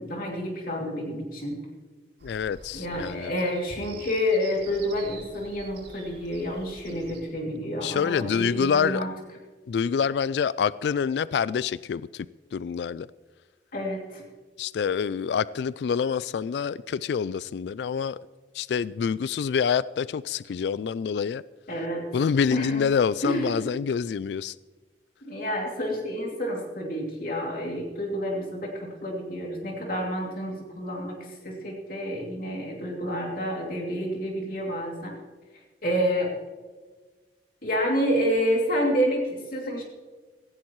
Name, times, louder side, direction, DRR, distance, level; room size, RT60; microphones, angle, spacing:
voice 1, 0.0-1.6 2.7-9.1 13.7-14.2 21.7-22.1 22.5-22.9 23.2-23.6 25.2-35.1 35.8-36.3 37.6-39.8, equal, 55° left, 2.8 m, -29 dB
voice 2, 2.2-3.4 7.8-9.0 9.7-12.3 12.5-13.1 14.6-18.2 18.5-21.4 22.1-24.6, left 6 dB, 70° left, 0.3 m, -26 dB
sound 1, 2.2-7.2, right 3 dB, 80° right, 4.6 m, -46 dB
18.0 x 15.5 x 3.1 m
head